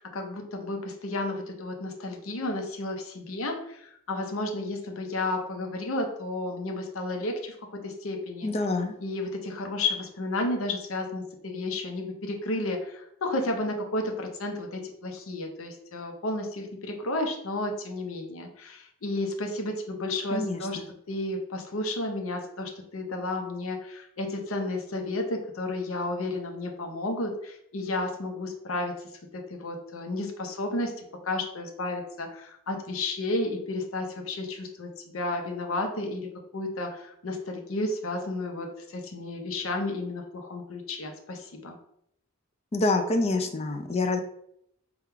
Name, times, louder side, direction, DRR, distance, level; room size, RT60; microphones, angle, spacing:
voice 1, 0.0-8.5 9.0-20.8 21.1-28.9 29.3-41.8, left 2 dB, 75° left, 3 dB, 0.7 m, -32 dB
voice 2, 8.4-9.0 20.3-20.8 42.7-44.2, left 2 dB, 30° left, 5 dB, 0.4 m, -26 dB
3.5 x 2.3 x 4.4 m, 0.74 s
head